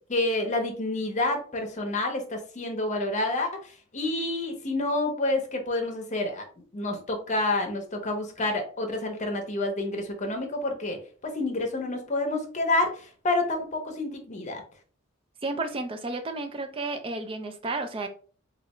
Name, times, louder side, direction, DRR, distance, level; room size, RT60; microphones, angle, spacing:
voice 1, 0.1-6.4 6.7-11.0 11.3-14.6, left 2 dB, 35° left, 0.7 m, -28 dB
voice 2, 15.4-18.1, right 3 dB, 25° right, 0.4 m, -32 dB
3.2 x 2.4 x 2.9 m
head